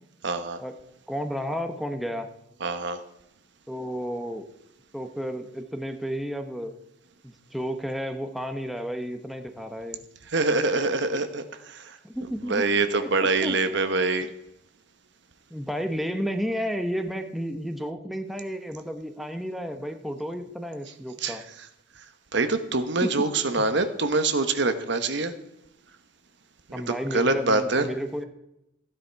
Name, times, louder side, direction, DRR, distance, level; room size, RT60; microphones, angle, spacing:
voice 1, 0.2-0.6 2.6-3.0 10.3-12.0 12.4-14.3 21.2-21.4 22.0-22.1 22.3-25.3 26.7-27.9, right 3 dB, 60° right, 9 dB, 1.1 m, -25 dB
voice 2, 1.1-2.3 3.7-4.5 4.9-6.7 7.2-10.0 12.0-12.7 13.0-13.1 13.4-13.6 14.2-14.3 15.5-21.4 23.0-23.2 23.6-23.7 26.7-28.2, equal, ahead, 6 dB, 0.8 m, -32 dB
15.0 x 10.0 x 4.6 m, 0.86 s
head